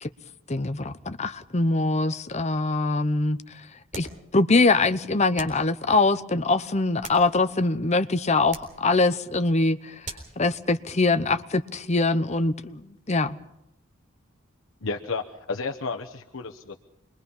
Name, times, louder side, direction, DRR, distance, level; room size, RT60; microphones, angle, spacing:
voice 1, 0.5-3.4 4.0-4.1 4.3-9.9 10.4-13.4, left 3 dB, 35° left, 11 dB, 0.8 m, -23 dB
sound 1, 3.9-4.2 5.4-5.7 6.7-7.6 8.5-8.8 10.0-10.4, right 3 dB, 40° right, 3.9 m, -40 dB
voice 2, 14.8-16.8, left 4 dB, 70° left, 3 dB, 1.0 m, -32 dB
27.0 x 22.5 x 5.5 m, 0.82 s
head